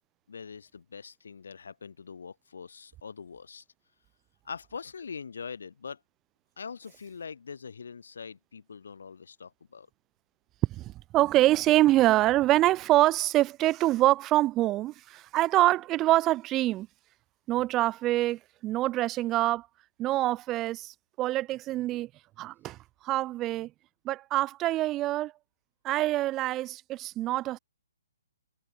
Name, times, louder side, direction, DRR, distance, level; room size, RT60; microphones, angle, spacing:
voice 1, 0.3-3.6 4.5-6.0 6.6-9.9, left 6 dB, 75° left, 1.9 m, -43 dB
voice 2, 10.8-16.9 17.5-19.7 20.0-22.1 22.4-22.8 23.0-23.7 24.0-25.3 25.8-27.6, right 16 dB, 15° right, 0.6 m, -25 dB
hypercardioid pair, 170°, 0 cm